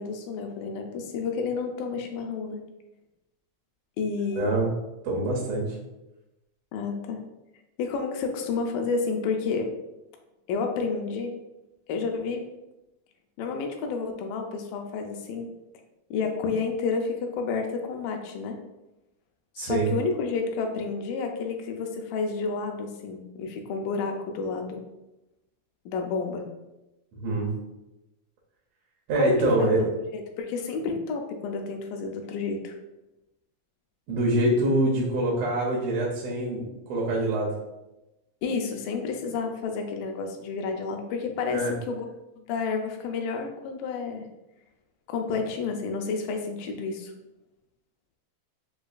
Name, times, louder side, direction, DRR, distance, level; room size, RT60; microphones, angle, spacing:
voice 1, 0.0-2.6 4.0-4.5 6.7-7.2 7.8-9.7 10.5-11.4 11.9-12.5 13.4-15.5 16.1-18.6 19.6-24.8 25.9-26.5 29.1-29.7 30.1-32.8 38.4-42.1 42.4-44.3 45.1-47.1, left 4 dB, 85° left, 4 dB, 2.3 m, -30 dB
voice 2, 4.3-4.7 5.0-5.8 19.6-19.9 27.1-27.5 29.1-29.8 34.1-37.5 41.5-41.7, right 2 dB, 75° right, -3 dB, 1.5 m, -25 dB
6.6 x 2.3 x 2.4 m, 0.96 s
omnidirectional pair, 3.9 m